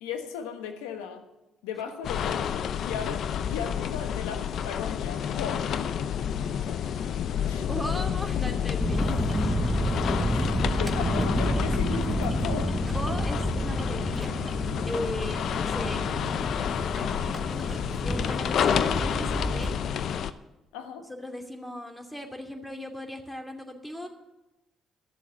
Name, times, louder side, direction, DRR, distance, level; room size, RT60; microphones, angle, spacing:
voice 1, 0.0-1.3 1.6-5.7 6.6-6.7 7.4-7.7 10.3-12.7 20.7-21.1, left 7 dB, 90° left, 7 dB, 1.2 m, -36 dB
sound 1, 2.0-20.3, left 8 dB, 65° left, 0.6 m, -29 dB
voice 2, 7.7-9.6 12.9-14.3 14.9-16.0 17.2-17.6 18.1-19.7 21.1-24.1, equal, 10° left, 4 dB, 2.5 m, -37 dB
sound 2, 8.8-19.7, right 1 dB, 15° right, 1.5 m, -30 dB
12.5 x 7.1 x 8.9 m, 0.99 s
supercardioid pair, 60°, 0 cm